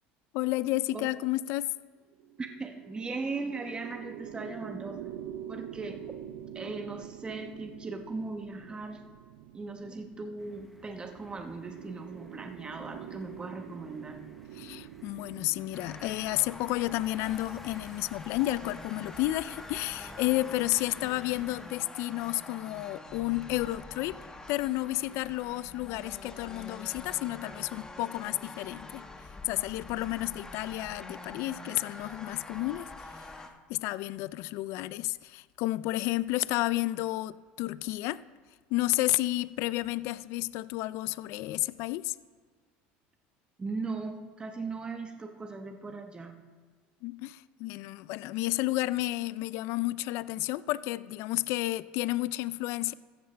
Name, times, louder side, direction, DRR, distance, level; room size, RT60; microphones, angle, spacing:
voice 1, 0.3-1.7 14.5-24.2 24.5-29.0 29.4-33.3 33.7-38.2 38.7-42.2 47.0-52.9, left 17 dB, 65° left, 0.4 m, -31 dB
sound 1, 2.1-19.6, right 10 dB, 85° right, 0.6 m, -46 dB
voice 2, 2.4-5.1 5.5-6.1 6.5-9.0 9.5-14.2 43.6-46.4, right 3 dB, 20° right, 1.2 m, -38 dB
sound 2, 10.4-21.7, equal, ahead, 1.1 m, -54 dB
sound 3, 15.7-33.5, left 2 dB, 15° left, 1.4 m, -46 dB
14.5 x 14.0 x 3.4 m
supercardioid pair, 105°, 5 cm